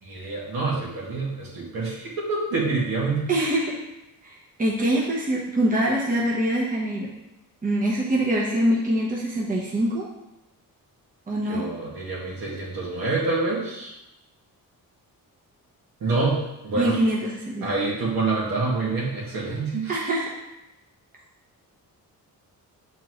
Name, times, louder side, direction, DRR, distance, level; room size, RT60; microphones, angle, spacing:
voice 1, 0.0-3.5 11.5-13.9 16.0-17.0 17.6-20.1, right 3 dB, 75° right, -5 dB, 2.1 m, -27 dB
voice 2, 3.3-3.8 4.2-7.1 7.6-10.1 11.3-11.7 16.7-17.7 19.9-20.3, right 1 dB, 25° right, -3 dB, 1.1 m, -24 dB
7.5 x 4.5 x 3.2 m, 0.93 s
cardioid pair, 135°, 35 cm